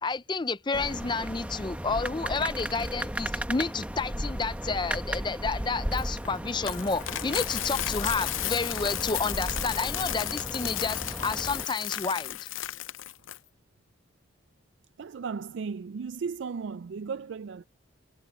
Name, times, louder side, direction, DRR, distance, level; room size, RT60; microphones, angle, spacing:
voice 1, 0.0-12.5, left 4 dB, 20° left, 0.4 m, -30 dB
sound 1, 0.7-11.6, equal, 5° right, 0.9 m, -35 dB
Coin (dropping), 5.9-13.4, left 13 dB, 75° left, 0.6 m, -34 dB
voice 2, 15.0-17.6, right 5 dB, 65° right, 0.4 m, -35 dB
head